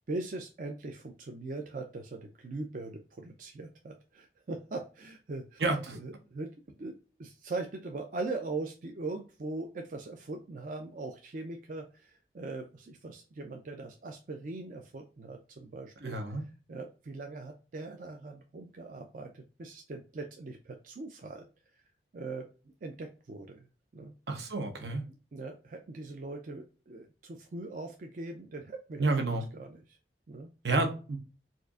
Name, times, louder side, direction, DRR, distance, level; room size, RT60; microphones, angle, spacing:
voice 1, 0.1-5.6 5.9-16.4 16.7-21.5 21.7-21.8 22.1-22.5 22.8-23.7 23.9-24.1 25.1-29.1 29.5-30.0 30.3-30.5, right 3 dB, 50° right, 0.4 m, -41 dB
voice 2, 5.6-6.0 16.0-16.4 24.3-25.0 29.0-29.4 30.6-31.2, right 2 dB, 75° right, 0.8 m, -30 dB
4.3 x 2.5 x 2.4 m
head